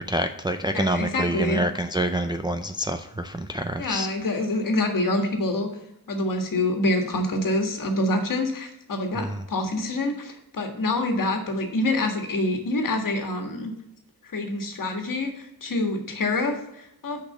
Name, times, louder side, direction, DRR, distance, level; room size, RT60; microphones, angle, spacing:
voice 1, 0.1-4.1 9.1-9.4, right 1 dB, 10° right, 6 dB, 0.4 m, -27 dB
voice 2, 0.7-1.6 3.8-5.7 6.1-13.7 14.2-17.2, left 2 dB, 55° left, 4 dB, 1.6 m, -26 dB
6.6 x 5.2 x 6.5 m, 0.84 s
wide cardioid pair, 140°, 39 cm